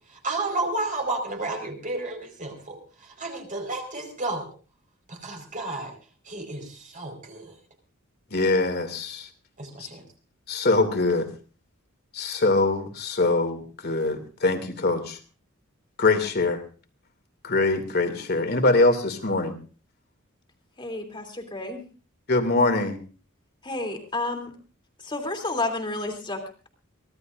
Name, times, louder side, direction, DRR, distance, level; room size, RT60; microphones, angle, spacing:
voice 1, 0.2-4.5 5.1-6.0 6.3-7.5 9.6-10.0, right 2 dB, 40° right, 5 dB, 4.8 m, -32 dB
voice 2, 8.3-9.3 9.8-9.9 10.5-11.3 12.1-15.2 16.0-16.6 17.4-19.6 22.3-23.0, left 2 dB, 50° left, 7 dB, 2.6 m, -23 dB
voice 3, 20.8-21.8 23.6-24.5 25.0-26.7, left 2 dB, 25° left, 4 dB, 3.1 m, -31 dB
24.0 x 17.5 x 2.6 m, 0.38 s
head